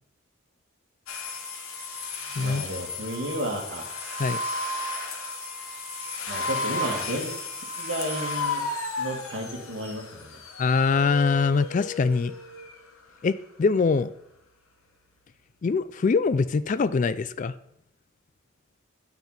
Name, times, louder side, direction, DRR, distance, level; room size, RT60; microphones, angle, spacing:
sound 1, 1.1-12.8, left 2 dB, 85° left, 1.3 m, -34 dB
voice 1, 2.4-3.9 6.3-7.3 7.8-8.6 9.0-10.4, right 1 dB, 60° right, 1 dB, 2.0 m, -32 dB
voice 2, 10.6-12.3 13.2-14.1 15.6-17.5, left 4 dB, 35° left, 15 dB, 0.3 m, -23 dB
9.1 x 5.8 x 5.6 m, 0.77 s
head